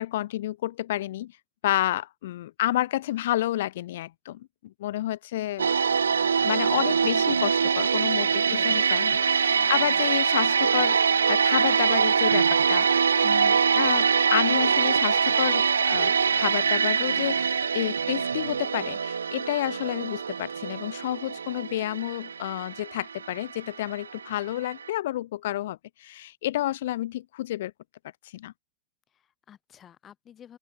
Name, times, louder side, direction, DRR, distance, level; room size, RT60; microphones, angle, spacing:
voice 1, 0.0-1.3 1.6-5.7 6.4-27.7 28.3-28.5, left 14 dB, 55° left, 1.4 m, -30 dB
sound 1, 5.6-24.4 24.7-24.9, right 6 dB, 70° right, 0.5 m, -24 dB
voice 2, 8.2-9.1 9.5-10.2 29.1-30.6, left 9 dB, 25° left, 4.6 m, -52 dB
open air
figure-of-eight pair, 90°, 0 cm